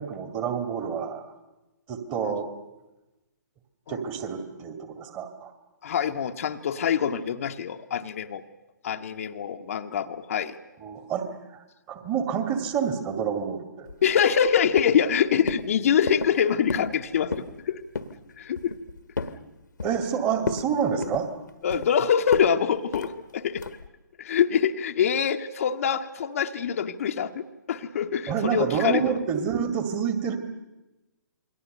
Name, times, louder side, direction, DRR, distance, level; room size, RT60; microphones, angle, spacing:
voice 1, 0.0-1.3 1.9-2.5 3.9-5.5 10.8-13.9 19.8-21.3 28.3-30.4, right 7 dB, 25° right, 8 dB, 2.4 m, -28 dB
voice 2, 5.8-8.4 8.8-10.5 14.0-17.8 18.4-18.7 21.6-23.6 24.2-29.2, left 8 dB, 50° left, 5 dB, 1.2 m, -25 dB
sound 1, 13.9-14.5 14.8-15.1 15.5-15.7 16.1-16.4 16.7-17.0 17.2-17.5 17.9-18.2 18.6-19.4 19.8-20.1 20.4-20.7 21.0-21.9 22.3-22.5 22.9-23.1 23.6-23.9, left 4 dB, 70° left, 1.5 m, -31 dB
28.0 x 22.0 x 6.7 m, 1.0 s
figure-of-eight pair, 130°, 10 cm